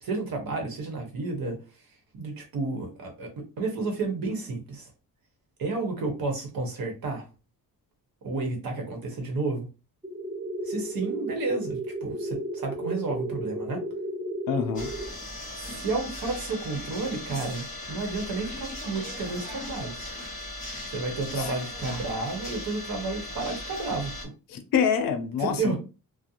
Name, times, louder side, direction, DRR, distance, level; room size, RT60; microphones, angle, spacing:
voice 1, 0.0-1.6 2.1-4.9 5.6-7.2 8.2-9.7 10.6-13.8 15.6-20.1 20.9-24.3 25.4-25.8, right 3 dB, 75° right, 1.0 m, -31 dB
sound 1, 10.0-15.0, right 2 dB, 10° right, 0.5 m, -33 dB
voice 2, 14.5-14.9 21.4-21.5 24.5-25.8, left 7 dB, 70° left, 0.5 m, -26 dB
sound 2, 14.7-24.2, left 1 dB, 20° left, 0.9 m, -38 dB
2.5 x 2.1 x 2.7 m
wide cardioid pair, 170°, 36 cm